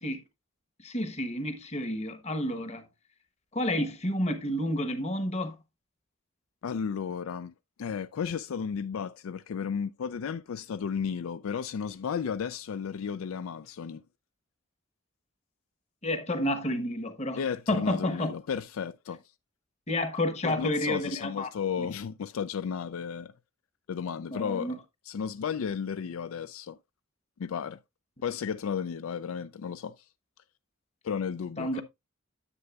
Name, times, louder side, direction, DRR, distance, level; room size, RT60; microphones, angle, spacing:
voice 1, 0.8-2.9 3.5-5.5 16.0-17.4 17.7-18.3 19.9-21.5 21.8-21.9 24.3-24.8 31.6-31.8, left 1 dB, 30° left, 1.1 m, -30 dB
voice 2, 6.6-7.5 7.8-14.0 17.4-19.2 20.4-23.3 23.9-24.7 25.1-26.8 27.4-27.8 28.2-29.9 31.0-31.8, left 7 dB, 75° left, 0.4 m, -33 dB
9.9 x 7.9 x 2.4 m
head